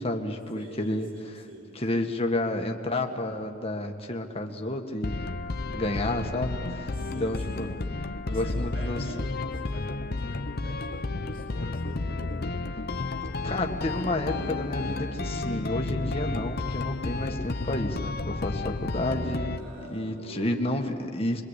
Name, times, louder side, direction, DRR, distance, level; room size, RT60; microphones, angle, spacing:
voice 1, 0.0-1.1 1.8-5.3 5.7-7.7 8.3-9.0 13.4-19.6 19.9-21.4, left 1 dB, 30° left, 3 dB, 1.8 m, -30 dB
voice 2, 0.5-1.9 6.9-7.7 8.3-12.4 19.5-20.5, right 1 dB, 85° right, -3 dB, 3.8 m, -45 dB
sound 1, 5.0-19.6, left 3 dB, 50° left, 0.8 m, -32 dB
sound 2, 7.7-7.8 8.6-8.7 9.0-9.6 10.3-10.4 11.1-11.3 12.0-12.1 12.4-12.6, left 1 dB, 80° left, 1.5 m, -44 dB
26.0 x 23.0 x 8.4 m, 2.3 s
head